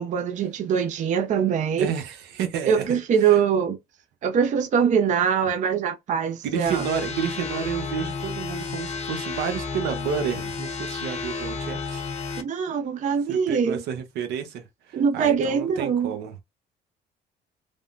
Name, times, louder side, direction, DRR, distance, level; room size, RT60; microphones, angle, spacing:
voice 1, 0.0-1.9 2.7-3.8 4.2-6.8 12.4-13.8 14.9-16.1, right 7 dB, 45° right, 0.5 m, -23 dB
voice 2, 1.8-3.4 6.4-12.0 13.3-16.3, right 8 dB, 80° right, 0.8 m, -31 dB
sound 1, 6.6-12.4, left 4 dB, 40° left, 0.7 m, -32 dB
3.4 x 2.1 x 2.4 m
cardioid pair, 110°, 17 cm